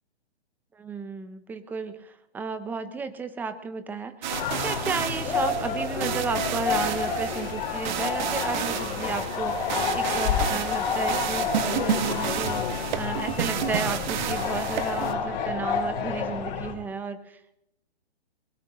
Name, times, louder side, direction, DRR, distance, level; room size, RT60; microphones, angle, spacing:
voice 1, 0.7-17.5, right 4 dB, 5° right, 11 dB, 0.6 m, -33 dB
sound 1, 4.2-15.1, right 9 dB, 45° right, 1.5 m, -31 dB
sound 2, 4.3-16.7, left 6 dB, 40° left, 4.9 m, -29 dB
22.5 x 21.0 x 3.0 m, 0.83 s
hypercardioid pair, 140°, 33 cm